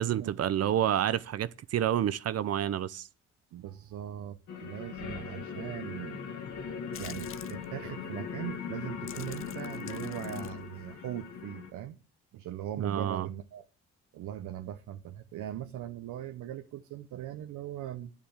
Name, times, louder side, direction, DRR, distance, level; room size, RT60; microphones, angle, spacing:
voice 1, 0.0-3.1 12.8-13.3, right 10 dB, 55° right, 0.6 m, -29 dB
voice 2, 3.5-6.2 7.0-12.0 12.3-13.6 14.1-18.1, right 11 dB, 80° right, 0.9 m, -40 dB
sound 1, 4.5-11.7, left 6 dB, 75° left, 2.3 m, -39 dB
sound 2, 6.9-7.7 8.4-8.6 8.9-11.4, left 10 dB, 45° left, 0.5 m, -47 dB
9.5 x 7.3 x 7.9 m
cardioid pair, 90°, 30 cm